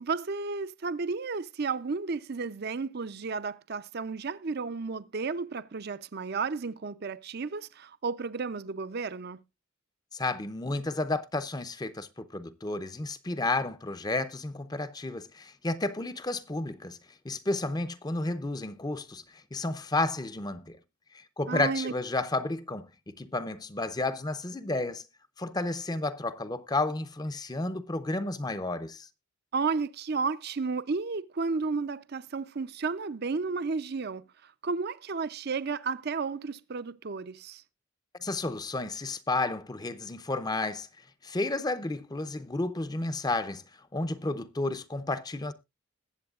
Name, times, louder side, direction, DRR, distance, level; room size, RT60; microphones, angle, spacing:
voice 1, 0.0-9.4 21.5-21.9 29.5-34.2 34.6-37.6, right 4 dB, 50° right, 0.6 m, -32 dB
voice 2, 10.1-17.0 17.2-20.8 21.1-25.0 25.4-29.1 38.2-40.9 41.2-43.6 43.9-45.5, left 2 dB, 20° left, 0.6 m, -32 dB
21.0 x 7.8 x 2.4 m
head